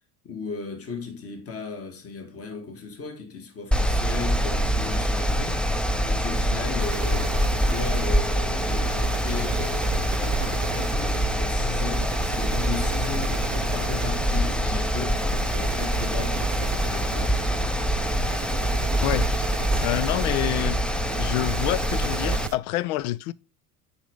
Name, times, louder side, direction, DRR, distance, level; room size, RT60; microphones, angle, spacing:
voice 1, 0.2-5.7 6.0-17.6, left 5 dB, 30° left, 1.8 m, -36 dB
Mechanical fan, 3.7-22.5, equal, ahead, 0.4 m, -25 dB
sound 1, 6.8-22.6, right 13 dB, 40° right, 0.7 m, -36 dB
voice 2, 19.0-19.5 19.8-20.8 21.2-23.3, left 15 dB, 70° left, 0.6 m, -27 dB
7.2 x 5.3 x 3.5 m
hypercardioid pair, 75°, 45 cm